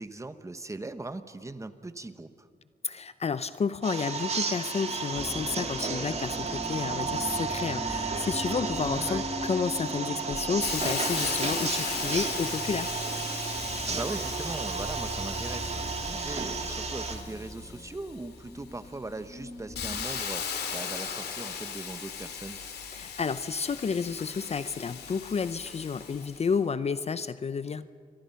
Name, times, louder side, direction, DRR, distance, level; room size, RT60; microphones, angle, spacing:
voice 1, 0.0-2.5 8.8-9.2 13.6-22.6, right 2 dB, 20° right, 11 dB, 1.1 m, -40 dB
voice 2, 2.8-12.9 22.9-27.9, left 5 dB, 40° left, 14 dB, 0.6 m, -31 dB
sound 1, 3.8-17.2, right 5 dB, 40° right, 2.3 m, -33 dB
sound 2, 5.1-20.2, left 1 dB, 15° left, 1.8 m, -40 dB
Hiss, 10.6-18.2 18.7-26.4, left 7 dB, 85° left, 2.9 m, -37 dB
29.0 x 23.0 x 5.8 m, 2.1 s
cardioid pair, 95°, 16 cm